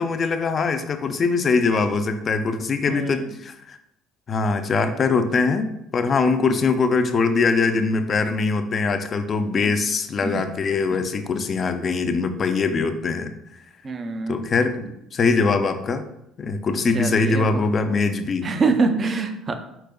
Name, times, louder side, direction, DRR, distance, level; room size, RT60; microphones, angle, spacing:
voice 1, 0.0-3.8 4.3-13.3 14.3-16.0 16.4-18.5, left 4 dB, 30° left, 8 dB, 0.4 m, -22 dB
voice 2, 2.9-3.3 9.5-9.8 10.2-10.5 10.9-11.1 13.8-14.5 14.8-14.9 16.9-17.7 18.4-19.5, right 4 dB, 30° right, 7 dB, 0.5 m, -25 dB
4.9 x 4.4 x 2.2 m, 0.80 s
cardioid pair, 140°, 0 cm